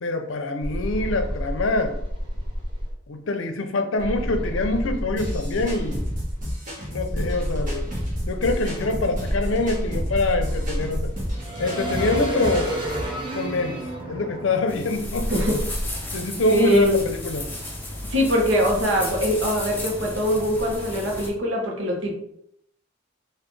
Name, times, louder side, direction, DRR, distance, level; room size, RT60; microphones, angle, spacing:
voice 1, 0.0-2.0 3.1-6.0 6.9-7.9 8.3-11.1 11.6-12.8 13.3-15.3 16.1-17.5, left 2 dB, 80° left, 7 dB, 0.5 m, -25 dB
sound 1, 0.6-2.9 4.0-6.5 7.1-15.8, equal, 25° right, 1.0 m, -30 dB
sound 2, 5.2-13.1, equal, 40° right, 1.2 m, -32 dB
sound 3, 14.7-21.3, left 1 dB, 10° left, 0.7 m, -34 dB
voice 2, 15.3-15.6 16.5-17.0 18.1-22.1, equal, 75° right, -1 dB, 1.0 m, -22 dB
4.1 x 2.6 x 3.2 m, 0.73 s
head